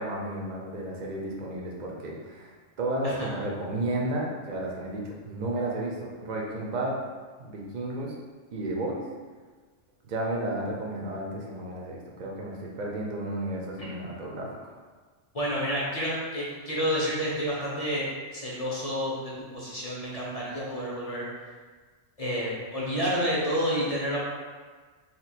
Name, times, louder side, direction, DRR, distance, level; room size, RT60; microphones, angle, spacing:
voice 1, 0.0-2.5 2.8-7.0 7.4-8.1 8.5-9.1 10.1-14.7, right 1 dB, 50° right, -2 dB, 0.6 m, -32 dB
voice 2, 15.3-18.1 18.3-21.3 22.2-24.2, equal, 40° left, -7 dB, 0.6 m, -29 dB
2.9 x 2.3 x 4.1 m, 1.4 s
omnidirectional pair, 1.3 m